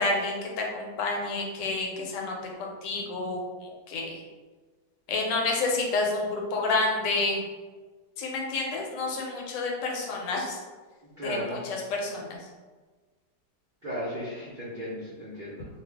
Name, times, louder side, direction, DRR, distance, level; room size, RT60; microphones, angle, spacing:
voice 1, 0.0-4.2 5.1-7.4 8.2-10.6 11.2-12.3, left 3 dB, 85° left, 0 dB, 1.2 m, -29 dB
voice 2, 11.2-11.6 13.8-15.7, equal, 65° right, -9 dB, 0.5 m, -35 dB
2.6 x 2.5 x 3.3 m, 1.3 s
omnidirectional pair, 1.9 m